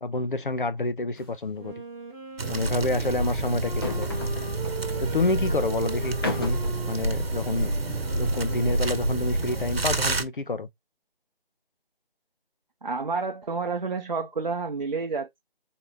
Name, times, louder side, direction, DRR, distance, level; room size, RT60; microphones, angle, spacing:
voice 1, 0.0-1.7 2.5-4.1 5.0-6.6 6.9-10.7, left 2 dB, 60° left, 0.8 m, -28 dB
sound 1, 1.1-1.4 1.6-1.7 3.6-4.8 6.0-6.8, left 2 dB, 25° left, 0.9 m, -34 dB
Wind instrument woodwind instrument, 1.5-10.1, right 2 dB, 5° right, 1.0 m, -40 dB
sound 2, 2.4-10.2, right 2 dB, 80° right, 1.0 m, -28 dB
voice 2, 12.8-15.4, right 4 dB, 50° right, 0.6 m, -30 dB
4.1 x 2.9 x 3.3 m
figure-of-eight pair, 160°, 29 cm